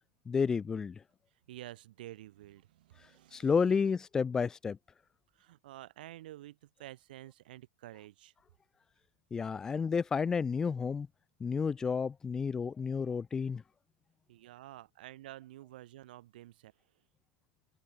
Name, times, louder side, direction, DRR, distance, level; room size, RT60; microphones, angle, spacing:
voice 1, 0.3-1.0 3.3-4.8 9.3-11.1 11.4-13.6, left 5 dB, 10° left, 1.4 m, -31 dB
voice 2, 1.5-3.7 5.3-8.3 14.3-16.7, right 15 dB, 65° right, 5.8 m, -50 dB
supercardioid pair, 175°, 5 cm